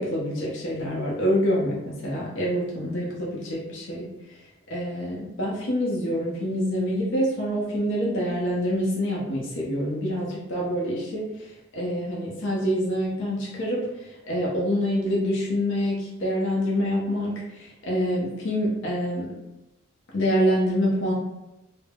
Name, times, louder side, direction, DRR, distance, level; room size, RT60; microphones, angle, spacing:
voice 1, 0.0-4.0 4.7-19.3 20.1-21.1, equal, 60° left, -4 dB, 0.6 m, -26 dB
3.3 x 2.0 x 2.2 m, 0.94 s
head